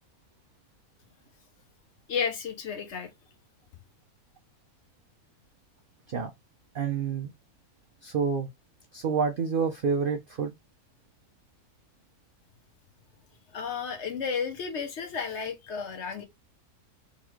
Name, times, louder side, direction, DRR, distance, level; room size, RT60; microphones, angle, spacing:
voice 1, 2.1-3.1 13.5-16.2, left 6 dB, 60° left, 0.8 m, -32 dB
voice 2, 6.7-7.3 8.0-8.5 8.9-10.5, right 6 dB, 80° right, 0.4 m, -28 dB
3.7 x 3.0 x 3.0 m
omnidirectional pair, 1.6 m